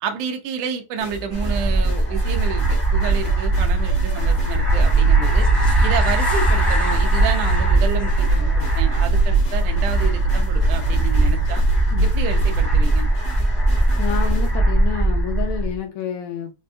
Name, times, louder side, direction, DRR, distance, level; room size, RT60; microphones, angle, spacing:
voice 1, 0.0-5.5 5.8-11.6 12.0-13.1, right 7 dB, 85° right, 1.5 m, -29 dB
sound 1, 1.0-14.6, left 4 dB, 55° left, 1.2 m, -37 dB
sound 2, 1.3-15.8, right 1 dB, ahead, 0.3 m, -20 dB
sound 3, 2.1-12.8, right 5 dB, 65° right, 2.1 m, -25 dB
voice 2, 14.0-16.5, left 9 dB, 80° left, 1.8 m, -29 dB
5.2 x 2.2 x 2.5 m
omnidirectional pair, 3.6 m